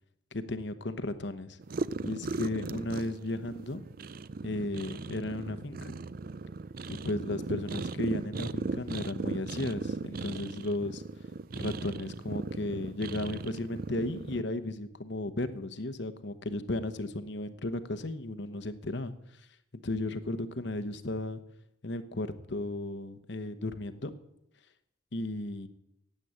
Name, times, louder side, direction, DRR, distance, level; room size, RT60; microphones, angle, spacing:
voice 1, 0.3-1.6 2.0-3.9 4.4-6.0 6.9-11.0 11.5-19.1 19.8-21.4 21.8-24.1 25.1-25.7, left 2 dB, 60° left, 12 dB, 1.0 m, -35 dB
sound 1, 1.6-14.4, right 3 dB, 45° right, 0.4 m, -38 dB
16.0 x 8.5 x 8.8 m, 0.82 s
head